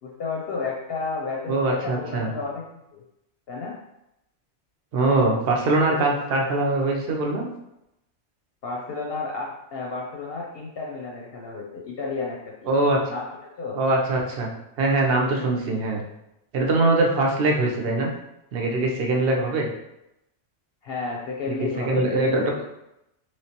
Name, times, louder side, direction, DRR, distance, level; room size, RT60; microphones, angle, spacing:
voice 1, 0.0-2.6 2.9-3.0 3.5-3.8 8.6-12.7 13.1-13.8 20.8-22.6, left 4 dB, 60° left, -2 dB, 0.7 m, -32 dB
voice 2, 1.5-2.3 4.9-7.4 12.7-13.0 13.8-14.5 14.8-16.0 16.5-18.1 18.5-19.7 21.5-22.4, right 2 dB, 60° right, 0 dB, 0.8 m, -22 dB
3.2 x 3.1 x 2.8 m, 0.86 s
omnidirectional pair, 1.3 m